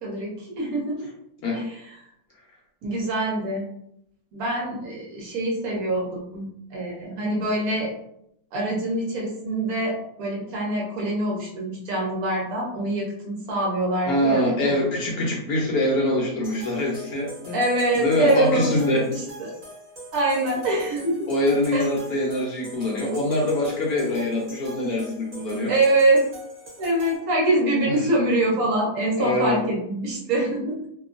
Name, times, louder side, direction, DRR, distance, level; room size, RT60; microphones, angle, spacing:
voice 1, 0.0-1.1 1.5-2.0 2.8-3.7 4.3-8.0 8.5-14.7 17.5-19.5 20.1-21.3 21.7-21.9 25.7-26.2 26.8-30.8, right 1 dB, 65° right, -2 dB, 1.0 m, -24 dB
voice 2, 14.1-17.6 17.9-19.1 21.3-25.7 27.8-28.0 29.2-29.6, left 1 dB, 70° left, -2 dB, 1.0 m, -24 dB
sound 1, 16.4-27.2, right 1 dB, 40° right, 0.9 m, -43 dB
2.9 x 2.2 x 2.4 m, 0.75 s
omnidirectional pair, 1.9 m